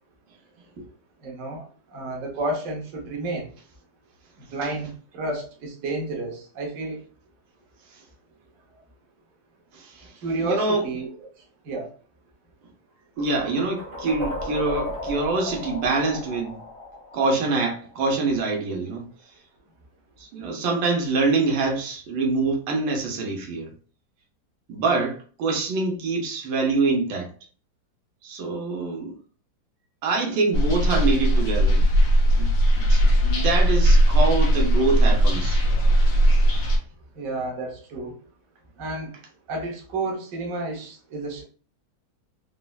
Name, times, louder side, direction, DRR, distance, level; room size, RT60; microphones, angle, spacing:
voice 1, 1.2-3.5 4.4-7.0 10.2-11.1 11.4-11.9 37.1-38.1 38.8-39.2 39.5-41.4, right 2 dB, 55° right, 1.1 m, -31 dB
voice 2, 9.7-10.1 10.4-10.8 13.2-16.6 17.1-19.1 20.2-23.7 24.7-27.3 28.2-29.2 30.0-31.8 32.4-35.7, right 3 dB, 85° right, 1.5 m, -25 dB
sound 1, 13.2-18.1, left 1 dB, 25° right, 0.7 m, -35 dB
sound 2, 30.5-36.8, equal, 80° left, 1.5 m, -18 dB
4.2 x 2.0 x 2.2 m
omnidirectional pair, 2.0 m